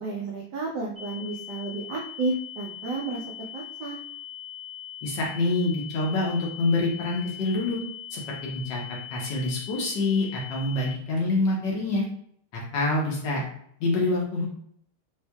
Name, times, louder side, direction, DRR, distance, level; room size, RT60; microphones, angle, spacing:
voice 1, 0.0-4.0, right 3 dB, 80° right, -2 dB, 0.9 m, -32 dB
sound 1, 1.0-11.0, left 11 dB, 50° right, 0.5 m, -41 dB
voice 2, 5.0-7.8 8.1-8.8 9.1-12.0 12.5-13.4 13.8-14.5, left 2 dB, 65° left, -2 dB, 1.3 m, -26 dB
3.5 x 3.1 x 2.2 m, 0.65 s
omnidirectional pair, 2.4 m